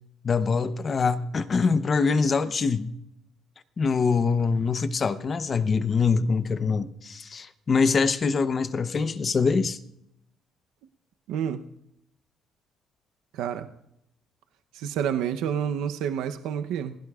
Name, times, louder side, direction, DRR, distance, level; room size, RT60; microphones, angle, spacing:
voice 1, 0.2-2.9 3.8-9.8, left 5 dB, 35° left, 0.7 m, -24 dB
voice 2, 11.3-11.6 13.3-13.7 14.7-17.0, right 8 dB, 90° right, 0.7 m, -29 dB
27.0 x 16.5 x 2.4 m
cardioid pair, 125°, 0 cm